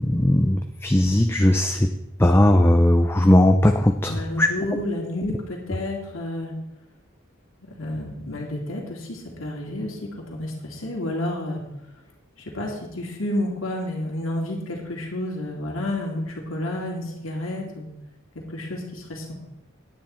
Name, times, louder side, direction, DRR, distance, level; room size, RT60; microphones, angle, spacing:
voice 1, 0.0-1.9 2.2-4.5, left 1 dB, 10° left, 5 dB, 0.5 m, -18 dB
voice 2, 4.1-6.5 7.6-11.6 12.5-17.9 18.5-19.3, left 1 dB, 80° left, -1 dB, 2.4 m, -30 dB
10.5 x 9.6 x 4.4 m, 0.89 s
head